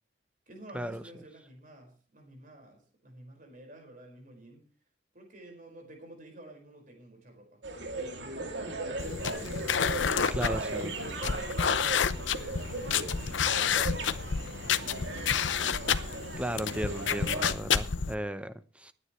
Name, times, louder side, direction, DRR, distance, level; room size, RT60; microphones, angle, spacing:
voice 1, 0.5-4.6 5.1-9.2 10.1-15.3, right 1 dB, 45° right, 5.2 m, -52 dB
sound 1, 7.6-17.5, right 2 dB, 75° right, 2.7 m, -38 dB
sound 2, 9.0-18.1, left 7 dB, 90° left, 0.8 m, -30 dB
voice 2, 10.3-10.9 15.9-16.1 16.4-18.9, right 1 dB, 5° right, 0.7 m, -36 dB
21.5 x 9.8 x 3.2 m
head